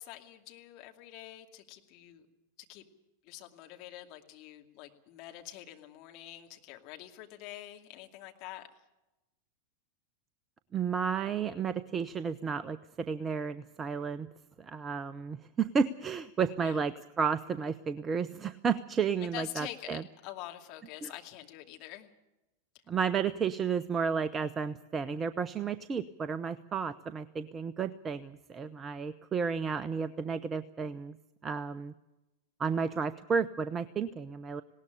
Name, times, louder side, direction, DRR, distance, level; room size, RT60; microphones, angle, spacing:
voice 1, 0.0-2.3 2.7-2.8 3.2-8.7 16.6-16.8 19.3-22.1, left 14 dB, 40° left, 3 dB, 2.4 m, -46 dB
voice 2, 10.7-14.3 14.6-20.0 21.0-21.1 22.9-31.2 31.4-31.9 32.6-34.6, right 6 dB, 20° right, 15 dB, 0.7 m, -32 dB
19.5 x 18.0 x 8.8 m, 0.99 s
figure-of-eight pair, 90°, 0 cm